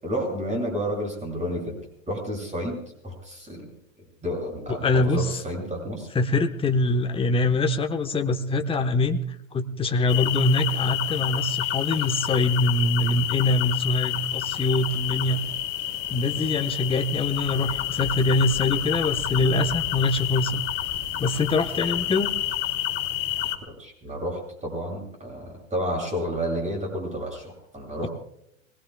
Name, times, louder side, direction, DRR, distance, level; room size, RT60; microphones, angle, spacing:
voice 1, 0.0-1.8 2.1-2.8 3.0-3.6 4.2-6.1 23.8-28.1, equal, 15° right, 1 dB, 8.0 m, -30 dB
voice 2, 4.7-5.4 6.1-9.2 9.5-15.4 16.1-20.6 21.2-22.3, left 2 dB, 15° left, 6 dB, 1.2 m, -24 dB
sound 1, 10.1-23.6, left 12 dB, 45° left, 2.6 m, -29 dB
25.5 x 19.0 x 2.3 m, 0.76 s
hypercardioid pair, 100°, 40 cm